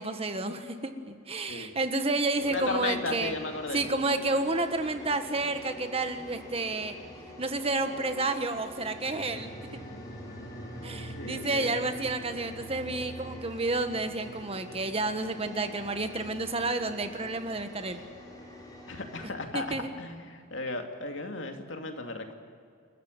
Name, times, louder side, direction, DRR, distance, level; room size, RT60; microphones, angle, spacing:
voice 1, 0.0-3.3 3.7-6.9 7.4-9.5 10.8-18.0 19.5-19.9, right 2 dB, 30° right, 8 dB, 1.4 m, -30 dB
sound 1, 2.3-19.3, left 1 dB, 20° left, 4.3 m, -47 dB
voice 2, 2.5-3.8 11.2-11.7 18.9-22.3, left 2 dB, 70° left, 4 dB, 2.6 m, -35 dB
sound 2, 8.8-19.7 20.0-20.1, right 1 dB, 50° left, 4.4 m, -46 dB
28.5 x 14.5 x 9.4 m, 2.2 s
head